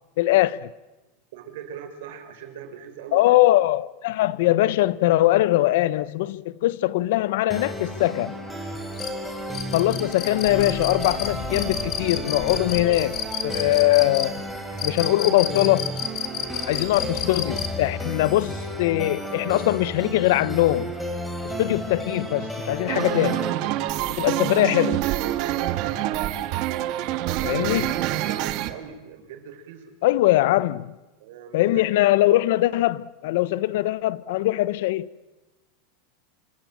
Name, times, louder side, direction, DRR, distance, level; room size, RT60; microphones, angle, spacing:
voice 1, 0.2-0.7 3.1-8.4 9.7-14.4 14.8-15.9 16.7-20.9 21.6-23.4 24.2-25.1 27.4-28.0 30.0-30.9 31.5-35.1, left 16 dB, 60° left, 0.8 m, -21 dB
voice 2, 1.3-3.4 27.0-27.7 28.2-29.9 31.2-31.8, right 8 dB, 65° right, 5.1 m, -41 dB
sound 1, 7.5-23.5, right 1 dB, ahead, 3.4 m, -33 dB
sound 2, 9.0-17.9, left 9 dB, 30° left, 2.3 m, -31 dB
sound 3, 22.9-28.7, right 14 dB, 40° right, 1.5 m, -26 dB
27.0 x 26.0 x 7.5 m
supercardioid pair, 165°, 0 cm